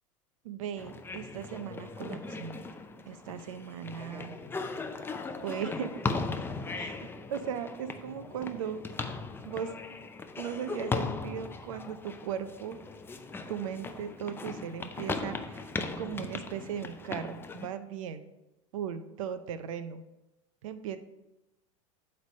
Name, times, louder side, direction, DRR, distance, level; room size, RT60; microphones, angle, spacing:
voice 1, 0.4-2.6 3.1-4.4 5.4-5.9 6.8-8.8 9.4-9.7 10.4-12.8 13.5-15.7 16.0-18.2 18.7-20.0 20.6-21.0, right 8 dB, 75° right, 11 dB, 0.6 m, -37 dB
sound 1, 0.8-17.7, left 3 dB, 15° left, 0.5 m, -38 dB
8.0 x 3.3 x 5.3 m, 0.96 s
hypercardioid pair, 100°, 17 cm